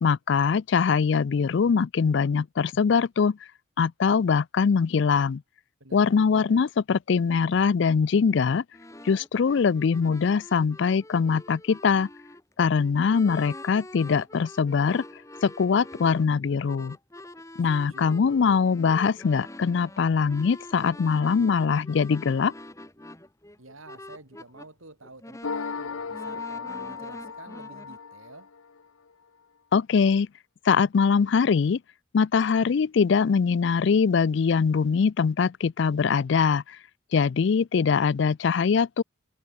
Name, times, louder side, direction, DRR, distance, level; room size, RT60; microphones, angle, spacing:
voice 1, 0.0-3.4 3.8-5.4 5.9-8.6 9.0-12.1 12.6-15.0 15.4-17.0 17.6-22.5 29.7-30.3 30.6-31.8 32.1-36.8 37.1-39.0, left 5 dB, 55° left, 0.4 m, -22 dB
voice 2, 5.8-6.7 17.7-18.4 23.6-28.5, right 2 dB, 75° right, 6.0 m, -49 dB
sound 1, 8.7-24.7 25.0-28.0, left 1 dB, 15° left, 1.6 m, -45 dB
sound 2, 25.4-28.8, left 5 dB, 80° left, 0.8 m, -36 dB
head